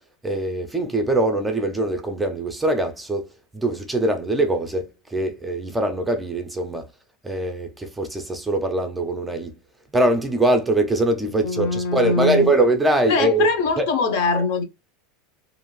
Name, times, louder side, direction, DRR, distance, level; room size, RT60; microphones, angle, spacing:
voice 1, 0.2-3.3 3.5-6.9 7.2-9.6 9.9-13.5 13.8-13.9, right 2 dB, 5° right, 0.4 m, -22 dB
voice 2, 11.3-12.5 13.1-14.6, left 4 dB, 60° left, 0.7 m, -22 dB
2.5 x 2.3 x 3.1 m
supercardioid pair, 150°, 0 cm